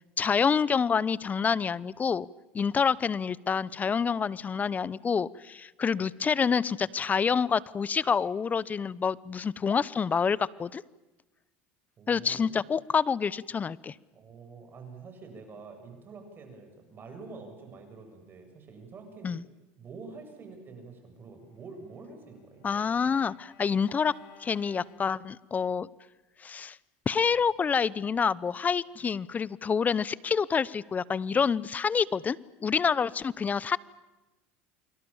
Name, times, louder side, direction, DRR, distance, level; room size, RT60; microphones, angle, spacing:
voice 1, 0.2-2.3 2.5-10.8 12.1-13.9 19.2-19.4 22.6-24.1 24.4-25.9 26.4-26.8 27.1-33.8, left 6 dB, 25° left, 21 dB, 0.8 m, -27 dB
voice 2, 12.0-12.6 14.1-19.3 19.8-23.1, right 4 dB, 35° right, 5 dB, 7.8 m, -47 dB
Bowed string instrument, 21.5-25.7, left 8 dB, 70° left, 3.8 m, -58 dB
29.5 x 24.5 x 7.3 m, 1.1 s
supercardioid pair, 100°, 6 cm